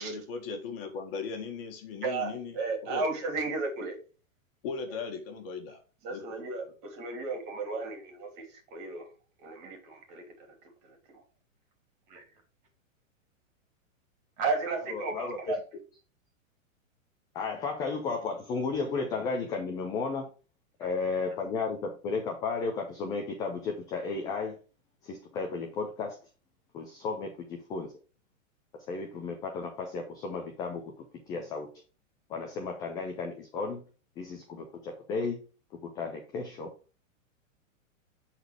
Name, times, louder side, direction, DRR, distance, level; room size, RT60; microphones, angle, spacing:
voice 1, 0.0-2.6 2.8-3.0 4.6-5.8 6.1-6.4, left 5 dB, 45° left, 1.7 m, -38 dB
voice 2, 2.0-4.0 6.0-9.1 9.4-10.5 10.8-11.2 12.1-12.2 14.4-15.6, right 3 dB, 40° right, 2.9 m, -34 dB
voice 3, 14.9-15.4 17.3-20.3 20.8-24.6 25.0-26.2 26.7-27.9 28.9-30.9 31.3-31.7 32.3-33.8 34.2-35.4 35.8-36.7, left 4 dB, 10° left, 0.4 m, -34 dB
8.1 x 4.1 x 4.8 m
hypercardioid pair, 150°, 40 cm